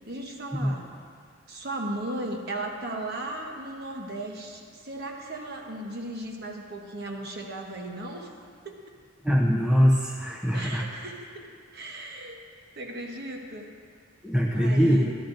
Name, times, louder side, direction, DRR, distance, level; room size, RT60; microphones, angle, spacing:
voice 1, 0.1-0.9 1.5-8.3 8.6-8.9 10.5-12.4 12.8-13.7 14.5-15.2, right 1 dB, 45° right, 1 dB, 1.0 m, -36 dB
voice 2, 9.2-10.9 14.2-15.0, equal, 5° right, -3 dB, 0.7 m, -22 dB
13.0 x 13.0 x 2.6 m, 2.1 s
head